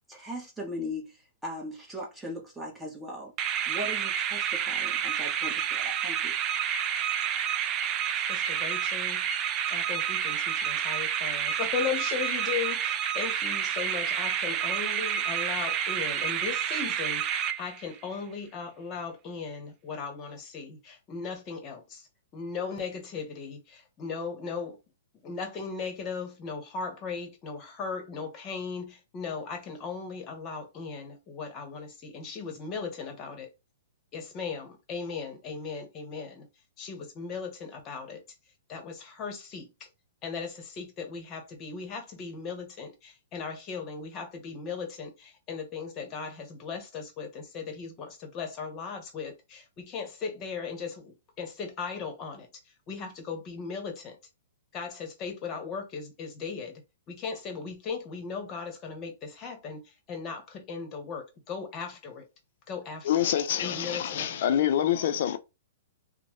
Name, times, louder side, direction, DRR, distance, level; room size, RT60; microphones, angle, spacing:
voice 1, 0.1-3.3 3.7-6.3, left 1 dB, 5° right, 1.0 m, -39 dB
sound 1, 3.4-18.0, right 9 dB, 30° right, 0.3 m, -29 dB
voice 2, 8.3-9.3 9.7-22.1 22.3-24.8 25.2-33.5 34.1-36.5 36.8-38.2 38.7-39.7 40.2-54.2 54.7-56.8 57.1-62.3 62.7-63.3 63.6-64.6, left 5 dB, 30° left, 1.0 m, -37 dB
voice 3, 63.0-65.4, left 10 dB, 60° left, 0.5 m, -26 dB
3.0 x 2.1 x 3.0 m
hypercardioid pair, 140°, 0 cm